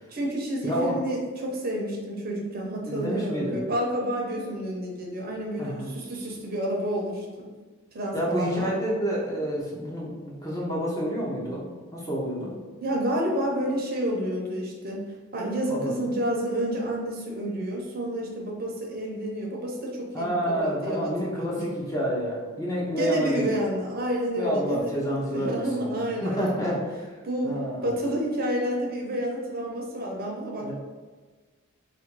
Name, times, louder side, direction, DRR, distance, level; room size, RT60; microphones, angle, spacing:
voice 1, 0.1-7.5 7.9-8.7 12.8-15.0 15.3-21.6 22.9-24.9 25.3-26.7 27.2-27.6 27.8-30.7, right 1 dB, 40° right, -1 dB, 0.7 m, -29 dB
voice 2, 0.6-1.0 2.8-3.6 5.6-5.9 8.1-12.5 15.7-15.9 20.1-23.7 24.4-27.9 30.6-30.7, equal, 15° left, -4 dB, 0.7 m, -29 dB
3.4 x 2.5 x 4.5 m, 1.4 s
head